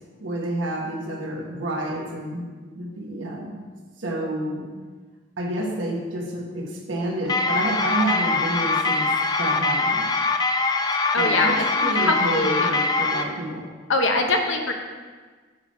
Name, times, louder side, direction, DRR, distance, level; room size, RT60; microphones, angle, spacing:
voice 1, 0.2-3.5 4.0-4.6 5.4-9.1 9.4-10.1 11.2-13.7, right 1 dB, 75° right, 0 dB, 1.3 m, -29 dB
sound 1, 7.3-13.2, left 3 dB, 20° left, 0.3 m, -23 dB
voice 2, 11.1-11.6 12.0-12.7 13.9-14.7, left 2 dB, 75° left, 3 dB, 0.9 m, -22 dB
8.1 x 3.5 x 5.6 m, 1.4 s
head